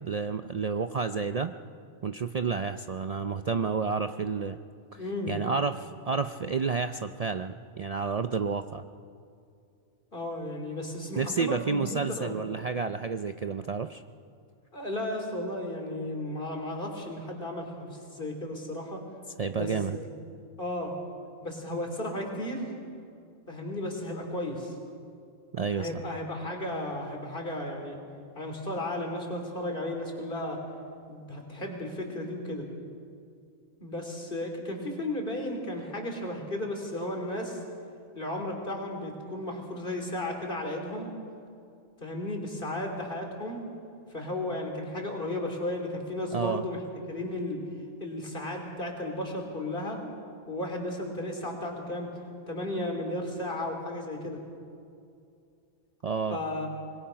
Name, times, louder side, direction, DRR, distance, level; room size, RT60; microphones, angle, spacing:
voice 1, 0.0-1.5 2.0-4.6 4.9-8.8 11.2-14.0 19.4-20.0 25.5-26.0 46.3-46.6 56.0-56.4, right 5 dB, 80° right, 8 dB, 0.3 m, -30 dB
voice 2, 5.0-5.3 10.1-12.3 14.7-19.0 19.5-20.1 20.6-21.0 21.4-22.7 23.5-24.7 25.8-28.0 28.4-30.6 31.1-32.7 33.8-37.6 38.2-41.1 42.0-43.6 44.1-47.6 48.0-50.0 50.5-52.1 52.5-54.4 56.3-56.7, left 1 dB, 40° left, 2 dB, 3.4 m, -34 dB
25.0 x 21.0 x 5.8 m, 2.4 s
omnidirectional pair, 1.4 m